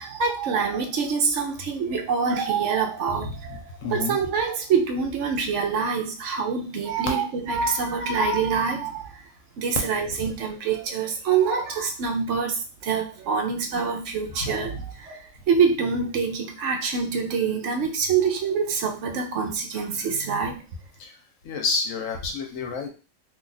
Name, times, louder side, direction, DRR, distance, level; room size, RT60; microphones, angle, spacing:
voice 1, 0.0-9.1 9.6-15.2 15.5-20.5, right 5 dB, 70° right, 3 dB, 0.9 m, -25 dB
voice 2, 3.1-4.2 9.8-10.3 14.4-14.8 20.4-20.6 21.0-21.2 21.4-22.9, left 4 dB, 75° left, 3 dB, 1.1 m, -31 dB
2.8 x 2.3 x 3.9 m, 0.34 s
omnidirectional pair, 1.4 m